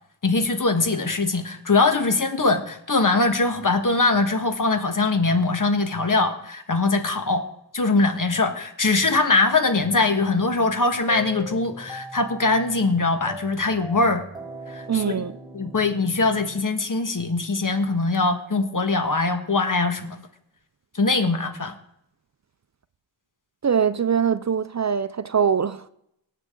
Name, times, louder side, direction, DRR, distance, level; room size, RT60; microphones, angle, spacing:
voice 1, 0.2-7.4 7.7-14.2 14.7-15.2 15.5-20.2 20.9-21.7, left 3 dB, 50° left, 1.5 m, -22 dB
sound 1, 11.1-17.2, equal, 10° right, 1.6 m, -40 dB
voice 2, 14.9-15.3 23.6-25.8, right 7 dB, 45° right, 0.5 m, -22 dB
18.5 x 7.5 x 3.8 m
wide cardioid pair, 65°, 41 cm